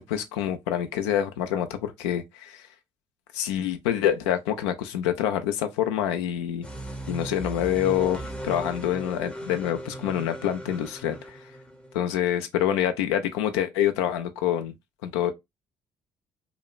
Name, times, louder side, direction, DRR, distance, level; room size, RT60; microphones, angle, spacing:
voice 1, 0.0-2.7 3.3-6.7 7.1-11.4 11.9-14.7 15.0-15.3, left 10 dB, 75° left, 0.4 m, -26 dB
sound 1, 6.6-12.0, right 1 dB, 5° left, 0.6 m, -37 dB
2.9 x 2.1 x 2.3 m
figure-of-eight pair, 50°, 14 cm